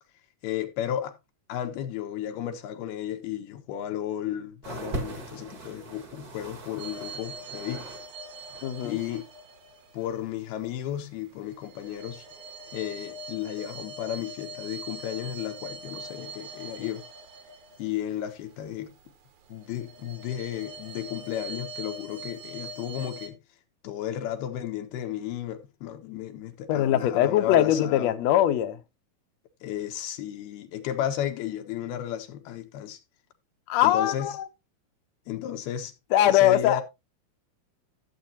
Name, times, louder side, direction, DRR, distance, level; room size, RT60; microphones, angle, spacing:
voice 1, 0.4-1.1 1.5-7.9 8.8-9.3 9.9-12.3 12.7-17.0 17.8-18.9 19.5-23.4 23.8-28.1 29.6-33.0 33.8-34.4 35.3-35.9 36.2-36.8, left 11 dB, 85° left, 3.3 m, -33 dB
sound 1, 4.6-8.1 8.3-9.2 10.0-10.1, right 2 dB, 40° right, 1.4 m, -40 dB
sound 2, 6.8-10.7 11.2-19.1 19.5-23.3, right 2 dB, 60° right, 2.5 m, -42 dB
voice 2, 8.6-9.0 26.7-28.8 33.7-34.4 36.1-36.8, left 12 dB, 70° left, 1.7 m, -22 dB
13.0 x 7.8 x 2.7 m
omnidirectional pair, 4.3 m